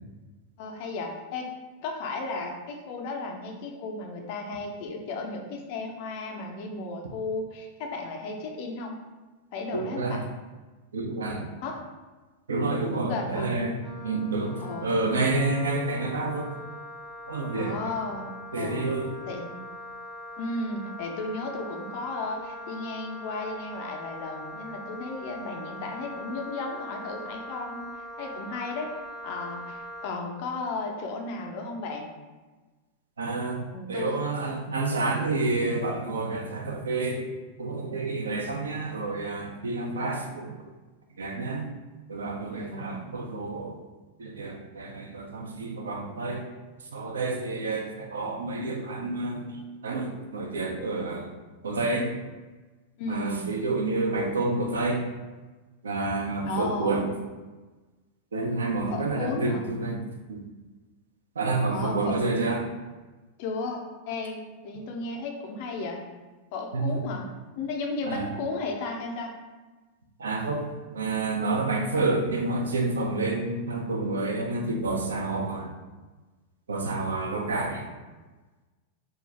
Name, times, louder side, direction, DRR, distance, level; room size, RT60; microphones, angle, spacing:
voice 1, 0.6-1.5 1.8-9.0 9.5-10.2 11.6-11.8 12.9-13.5 14.6-14.9 17.5-18.9 19.3-19.6 20.4-27.8 28.2-29.0 29.2-32.1 33.7-34.3 39.8-40.2 42.5-43.0 53.0-53.5 56.4-57.0 58.9-59.7 61.7-62.2 63.4-66.0 66.5-67.3 67.6-69.3, left 3 dB, 45° left, 2 dB, 0.5 m, -34 dB
voice 2, 9.7-10.2 10.9-11.5 12.5-13.8 14.0-16.5 17.3-17.7 18.5-19.1 33.2-33.6 33.9-37.3 37.6-40.5 41.2-41.7 42.1-43.7 44.2-46.4 46.9-51.3 51.6-52.1 53.1-55.1 55.8-57.0 58.3-60.0 60.3-60.4 61.4-62.6 66.7-67.0 68.1-68.2 70.2-70.6 70.9-75.7 76.7-77.8, right 3 dB, 70° right, 2 dB, 0.4 m, -29 dB
Wind instrument woodwind instrument, 13.8-30.1, left 1 dB, 20° right, 0.6 m, -42 dB
2.5 x 2.3 x 3.1 m, 1.3 s
figure-of-eight pair, 90°, 0 cm